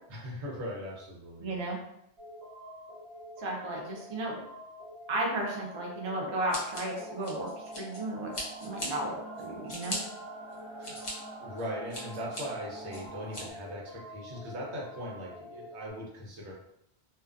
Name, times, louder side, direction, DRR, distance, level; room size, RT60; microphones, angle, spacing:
voice 1, 0.1-1.7 10.8-11.0 11.4-16.5, equal, 80° right, -2 dB, 1.0 m, -40 dB
voice 2, 1.4-1.8 3.4-4.4 5.1-7.5 7.8-8.3 8.6-10.0, right 1 dB, 40° right, -2 dB, 0.4 m, -34 dB
sound 1, 2.2-15.9, equal, 65° right, 1.3 m, -47 dB
Scissors, 6.5-8.0 8.3-8.9 9.4-10.0 10.5-11.1 11.6-12.4 12.9-13.4, left 1 dB, 45° left, 0.8 m, -38 dB
sound 2, 6.9-13.5, right 3 dB, 10° left, 0.7 m, -47 dB
2.3 x 2.3 x 2.3 m, 0.76 s
omnidirectional pair, 1.2 m